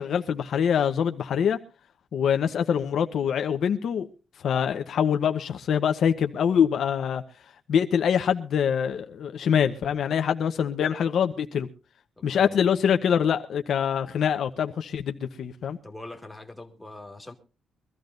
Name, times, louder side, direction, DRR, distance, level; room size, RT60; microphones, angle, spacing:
voice 1, 0.0-1.6 2.1-4.1 4.4-7.2 7.7-11.7 12.2-15.8, left 8 dB, 65° left, 0.9 m, -24 dB
voice 2, 12.2-12.7 15.8-17.3, left 2 dB, 5° left, 2.1 m, -43 dB
23.5 x 14.0 x 2.6 m
cardioid pair, 135°, 0 cm